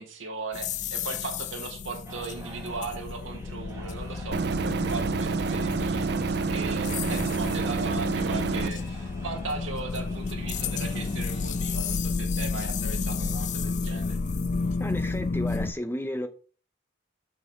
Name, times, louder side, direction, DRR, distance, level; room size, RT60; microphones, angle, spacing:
voice 1, 0.0-14.2, right 3 dB, 90° right, 1.6 m, -38 dB
sound 1, 0.5-15.7, left 4 dB, 40° left, 0.4 m, -31 dB
sound 2, 2.0-11.9, right 2 dB, 15° right, 1.7 m, -48 dB
sound 3, 4.3-8.7, right 4 dB, 55° right, 0.5 m, -28 dB
voice 2, 14.8-16.3, left 1 dB, 10° left, 0.8 m, -33 dB
6.2 x 6.1 x 4.5 m
head